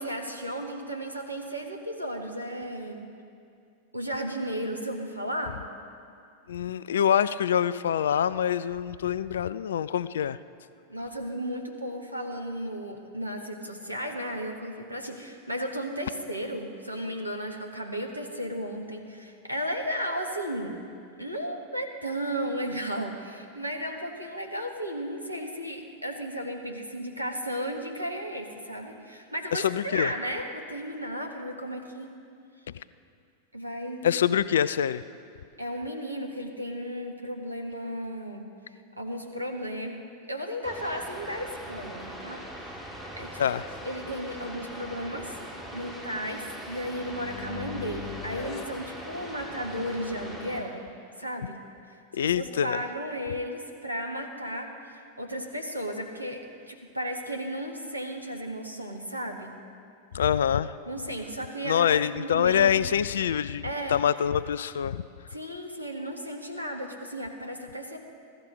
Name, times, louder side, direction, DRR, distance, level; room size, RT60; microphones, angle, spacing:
voice 1, 0.0-3.1 3.9-5.6 10.9-20.8 21.2-32.1 33.5-34.1 35.6-40.0 40.3-42.9 43.2-50.8 51.2-59.6 60.9-62.7 63.6-64.0 65.3-68.0, equal, 90° right, 2 dB, 1.5 m, -34 dB
voice 2, 6.5-10.4 29.5-30.1 34.0-35.0 43.4-43.7 52.1-52.8 60.1-60.7 61.6-65.0, left 9 dB, 65° left, 16 dB, 0.3 m, -25 dB
sound 1, 40.6-50.6, equal, 5° right, 3.0 m, -41 dB
sound 2, 46.7-49.8, left 9 dB, 30° left, 0.7 m, -42 dB
15.5 x 13.0 x 5.2 m, 2.4 s
figure-of-eight pair, 90°, 0 cm